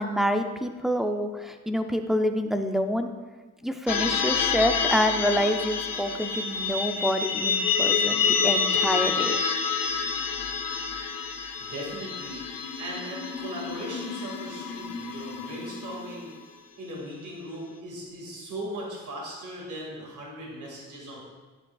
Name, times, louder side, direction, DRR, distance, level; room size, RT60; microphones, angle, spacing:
voice 1, 0.0-3.1 3.6-9.4, equal, ahead, 6 dB, 0.3 m, -27 dB
sound 1, 3.9-16.4, left 6 dB, 85° left, 0.8 m, -28 dB
voice 2, 11.6-12.5 12.8-16.4 16.8-21.2, equal, 65° right, -3 dB, 2.0 m, -38 dB
10.5 x 8.9 x 2.3 m, 1.3 s
wide cardioid pair, 170°, 33 cm